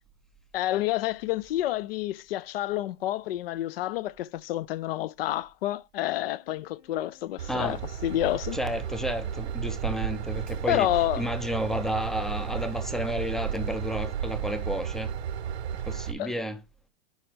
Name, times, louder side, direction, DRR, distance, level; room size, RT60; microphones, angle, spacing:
voice 1, 0.5-8.6 10.7-11.3 16.2-16.3, left 15 dB, 65° left, 0.6 m, -29 dB
sound 1, 6.3-10.4 10.9-15.2, left 6 dB, 45° left, 3.5 m, -56 dB
Train / Engine, 7.4-16.1, right 8 dB, 85° right, 0.9 m, -33 dB
voice 2, 7.5-7.8 8.5-10.9 11.2-15.1 15.9-16.6, equal, ahead, 0.4 m, -31 dB
10.5 x 4.2 x 3.3 m
supercardioid pair, 145°, 32 cm